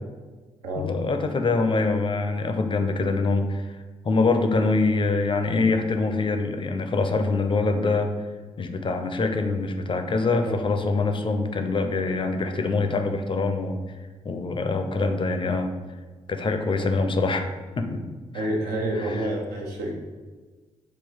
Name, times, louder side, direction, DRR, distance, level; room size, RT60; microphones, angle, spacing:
voice 1, 0.8-3.7 4.0-8.1 8.6-13.8 14.2-15.7 16.3-17.5 17.8-18.0 18.3-18.5 19.0-19.1, left 3 dB, 35° left, 6 dB, 0.4 m, -24 dB
voice 2, 18.3-19.9, right 1 dB, 80° right, 0 dB, 0.6 m, -28 dB
2.9 x 2.2 x 4.0 m, 1.3 s
hypercardioid pair, 40°, 15 cm